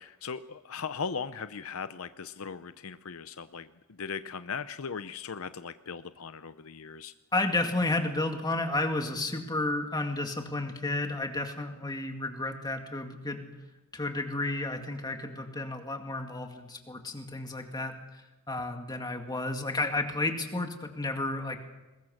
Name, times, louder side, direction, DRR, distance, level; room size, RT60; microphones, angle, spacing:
voice 1, 0.0-3.7 4.0-7.1, left 6 dB, 70° left, 12 dB, 0.6 m, -38 dB
voice 2, 7.3-13.5 13.9-18.2 18.5-21.6, left 2 dB, 20° left, 4 dB, 2.1 m, -32 dB
22.5 x 20.5 x 6.5 m, 1.1 s
head